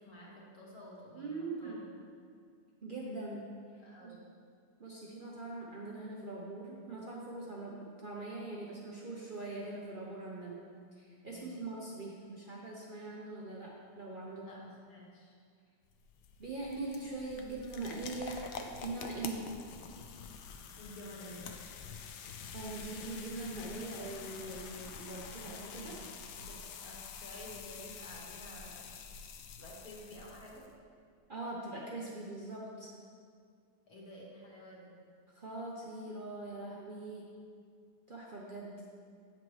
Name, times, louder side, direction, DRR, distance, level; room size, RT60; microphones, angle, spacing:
voice 1, 0.0-2.0 3.8-4.2 11.3-11.7 14.4-15.3 20.8-21.5 25.7-26.1 26.3-29.0 29.6-30.6 33.9-34.9, equal, 60° left, -4 dB, 1.7 m, -51 dB
voice 2, 1.1-1.8 2.8-3.5 4.0-4.1 4.8-10.6 11.0-14.5 16.4-19.5 22.5-25.9 31.3-32.9 35.3-37.3 38.1-38.8, right 2 dB, 60° right, -4 dB, 0.5 m, -42 dB
sound 1, 15.8-30.7, left 6 dB, 80° left, 1.2 m, -47 dB
8.7 x 5.8 x 3.1 m, 2.1 s
omnidirectional pair, 1.8 m